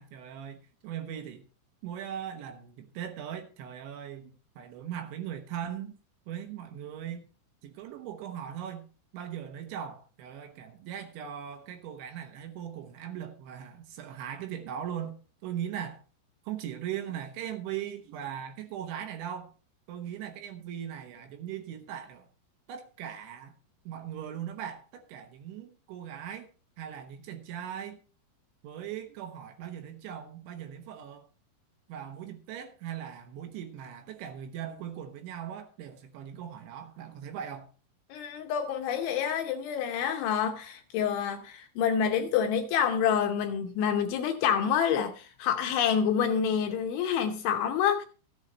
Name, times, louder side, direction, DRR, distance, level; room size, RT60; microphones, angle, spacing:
voice 1, 0.0-1.5 1.8-5.9 6.3-7.3 7.6-8.9 9.1-15.2 15.4-16.0 16.4-19.5 19.9-22.3 22.7-23.5 23.8-26.5 26.8-28.0 28.6-31.3 31.9-37.7, right 9 dB, 70° right, 3.3 m, -39 dB
voice 2, 38.1-48.1, left 8 dB, 75° left, 3.0 m, -27 dB
14.5 x 8.1 x 4.1 m
omnidirectional pair, 5.9 m